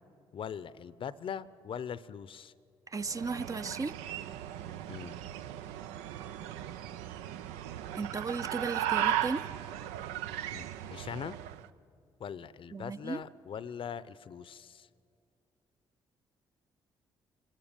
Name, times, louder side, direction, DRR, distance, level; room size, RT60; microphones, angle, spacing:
voice 1, 0.3-2.5 4.9-5.2 10.5-11.4 12.2-14.9, left 8 dB, 55° left, 17 dB, 0.6 m, -41 dB
voice 2, 2.9-3.9 7.9-9.4 12.7-13.2, right 4 dB, 30° right, 12 dB, 0.6 m, -35 dB
sound 1, 3.0-11.7, right 11 dB, 85° right, 0.5 m, -36 dB
25.5 x 12.0 x 9.0 m, 2.4 s
hypercardioid pair, 50°, 11 cm